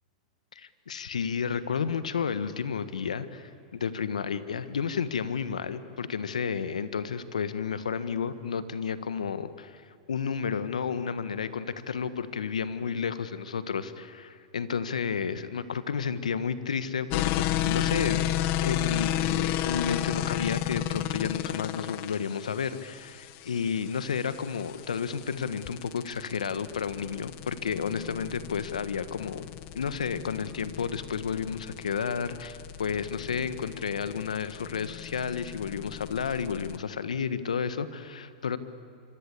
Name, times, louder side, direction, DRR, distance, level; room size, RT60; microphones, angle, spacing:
voice 1, 0.5-9.8 10.1-29.5 29.7-38.6, left 6 dB, 90° left, 13 dB, 1.5 m, -31 dB
sound 1, 17.1-36.8, left 13 dB, 50° left, 1.1 m, -33 dB
26.5 x 23.5 x 8.4 m, 2.4 s
hypercardioid pair, 115°, 4 cm